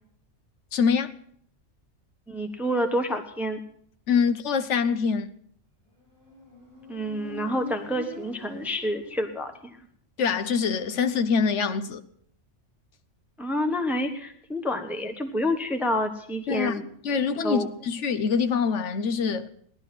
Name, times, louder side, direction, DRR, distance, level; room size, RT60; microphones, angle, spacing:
voice 1, 0.7-1.1 4.1-5.3 10.2-12.0 16.5-16.7 17.0-19.5, left 6 dB, 70° left, 1.1 m, -24 dB
voice 2, 2.3-3.6 6.9-9.5 13.4-16.9 17.4-17.7, equal, ahead, 1.0 m, -28 dB
Motorcycle, 6.0-9.7, left 2 dB, 25° left, 6.2 m, -44 dB
17.0 x 11.5 x 5.8 m
omnidirectional pair, 1.3 m